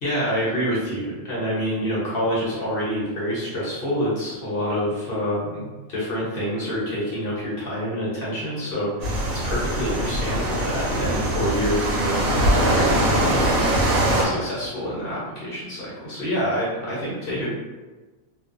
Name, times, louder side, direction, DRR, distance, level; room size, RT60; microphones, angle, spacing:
voice 1, 0.0-9.2 9.4-17.6, equal, 50° left, -7 dB, 0.9 m, -27 dB
sound 1, 9.0-14.3, right 1 dB, 80° right, 1.0 m, -22 dB
2.4 x 2.2 x 2.5 m, 1.2 s
omnidirectional pair, 1.4 m